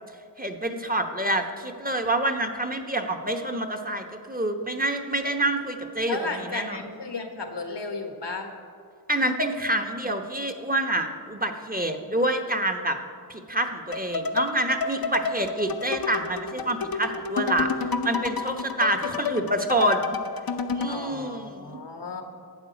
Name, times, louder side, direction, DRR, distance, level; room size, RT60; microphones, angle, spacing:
voice 1, 0.4-6.2 6.5-6.8 9.1-13.0 13.3-17.7 18.0-20.2 20.7-21.8, right 1 dB, 20° right, 5 dB, 0.9 m, -27 dB
voice 2, 6.1-8.5 20.9-22.2, left 3 dB, 80° left, 5 dB, 1.3 m, -34 dB
sound 1, 13.9-21.0, left 5 dB, 55° left, 0.7 m, -30 dB
12.0 x 8.4 x 5.1 m, 2.3 s
wide cardioid pair, 55°, 41 cm